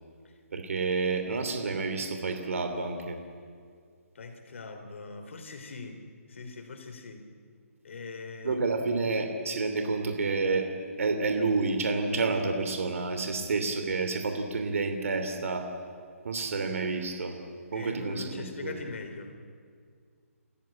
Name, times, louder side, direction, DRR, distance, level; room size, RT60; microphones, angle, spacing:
voice 1, 0.5-3.2 8.4-10.7 11.0-15.7 16.2-17.3 17.7-18.7, right 4 dB, 65° right, 6 dB, 2.9 m, -29 dB
voice 2, 4.1-7.3 7.8-8.6 17.7-19.3, left 4 dB, 55° left, 6 dB, 3.3 m, -41 dB
28.5 x 15.0 x 9.0 m, 2.1 s
hypercardioid pair, 170°, 8 cm